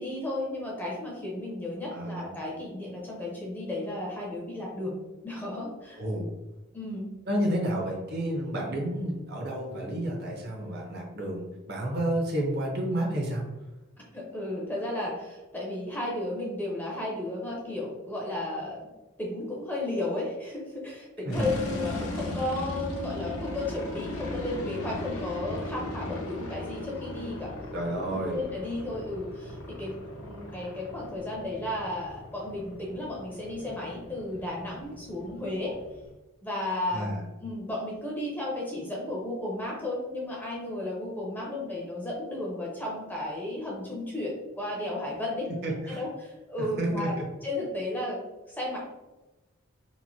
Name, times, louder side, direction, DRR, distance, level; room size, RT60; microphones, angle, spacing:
voice 1, 0.0-4.9 5.2-6.0 6.7-7.1 14.1-18.9 19.2-27.5 28.1-30.0 30.2-35.8 36.4-37.1 37.4-45.5 45.9-48.2 48.5-48.8, left 1 dB, 10° left, -4 dB, 0.5 m, -34 dB
voice 2, 1.9-2.4 6.0-6.3 7.3-13.4 21.3-21.5 27.7-28.4 36.9-37.2 45.5-46.0 46.8-47.2, right 1 dB, 45° right, -1 dB, 0.6 m, -30 dB
sound 1, 21.3-36.1, left 1 dB, 75° left, 0.7 m, -38 dB
3.0 x 2.5 x 2.6 m, 1.1 s
head